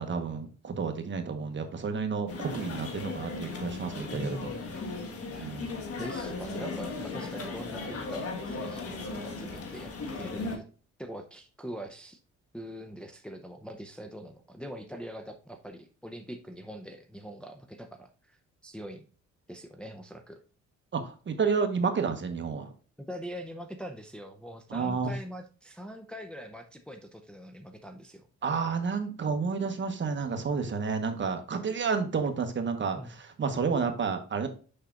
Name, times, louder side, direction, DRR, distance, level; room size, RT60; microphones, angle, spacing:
voice 1, 0.0-4.5 5.3-5.8 20.9-22.7 24.7-25.1 28.4-34.5, right 5 dB, 40° right, 6 dB, 1.2 m, -30 dB
sound 1, 2.3-10.6, left 3 dB, 50° left, 1.4 m, -37 dB
voice 2, 4.1-5.6 6.0-10.7 11.0-12.2 12.5-18.4 18.6-19.1 19.5-20.4 23.0-28.3 32.9-33.1, equal, 5° left, 4 dB, 0.6 m, -43 dB
6.6 x 5.8 x 2.4 m, 0.38 s
cardioid pair, 90°, 30 cm